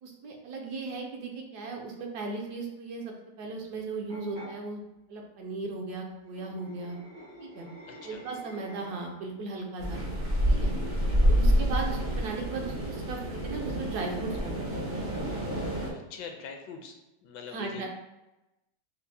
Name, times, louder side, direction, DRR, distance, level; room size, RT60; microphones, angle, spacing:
voice 1, 0.0-4.8 5.1-7.0 7.4-7.7 8.0-10.0 10.5-10.8 11.2-14.9 17.5-17.9, right 3 dB, 70° right, 1 dB, 1.1 m, -37 dB
sound 1, 4.1-4.5 6.2-9.3, equal, 90° right, 2.2 m, -49 dB
sound 2, 9.8-15.9, equal, 45° right, 0.6 m, -28 dB
voice 2, 15.9-16.9 17.2-17.9, left 6 dB, 80° left, 3 dB, 1.2 m, -43 dB
5.6 x 2.1 x 2.6 m, 0.97 s
omnidirectional pair, 1.9 m